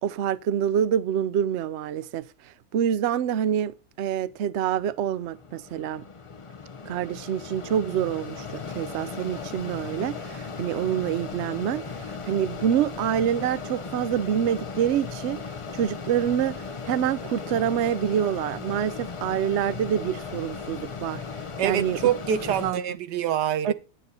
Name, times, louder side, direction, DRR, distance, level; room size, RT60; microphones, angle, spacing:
voice 1, 0.0-6.0 6.9-15.4 15.7-22.0 22.6-23.0 23.6-23.7, right 9 dB, 65° right, 0.7 m, -27 dB
Mechanisms, 4.7-22.7, left 5 dB, 45° left, 0.4 m, -37 dB
voice 2, 21.6-23.7, right 9 dB, 85° right, 1.5 m, -25 dB
9.6 x 8.7 x 4.2 m
omnidirectional pair, 1.8 m